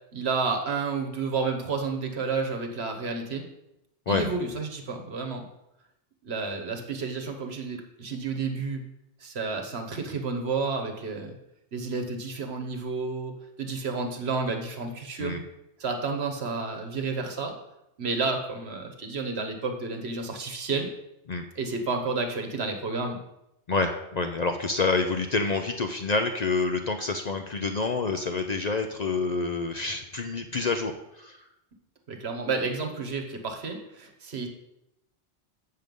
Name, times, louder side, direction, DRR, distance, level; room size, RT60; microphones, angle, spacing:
voice 1, 0.1-3.4 4.1-5.5 6.2-8.8 9.2-11.4 11.7-15.4 15.8-17.5 18.0-20.9 21.6-23.2 32.1-34.5, right 4 dB, 65° right, 4 dB, 1.4 m, -31 dB
voice 2, 23.7-31.4, left 3 dB, 50° left, 6 dB, 0.5 m, -28 dB
7.7 x 6.6 x 5.3 m, 0.86 s
omnidirectional pair, 1.1 m